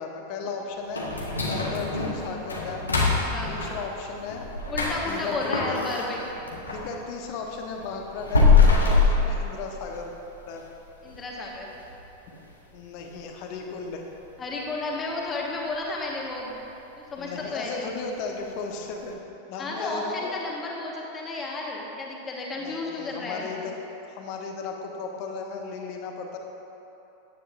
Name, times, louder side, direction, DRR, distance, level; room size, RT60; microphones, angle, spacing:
voice 1, 0.0-1.0 1.4-2.9 3.5-4.5 5.1-5.9 6.7-10.1 10.5-10.7 12.7-14.0 17.2-19.2 19.5-20.3 22.5-23.7 24.1-26.4, left 4 dB, 45° left, 2 dB, 1.2 m, -35 dB
sound 1, 0.9-6.9 7.3-10.1 10.5-10.6 11.1-11.2 11.7-12.0 12.3-12.4 13.0-13.1, left 4 dB, 75° left, 1.3 m, -24 dB
voice 2, 3.3-3.6 4.7-6.2 11.0-11.7 14.4-16.6 17.0-17.9 19.6-23.5, left 2 dB, 20° left, -2 dB, 1.5 m, -32 dB
14.0 x 9.8 x 2.6 m, 3.0 s
figure-of-eight pair, 90°, 0 cm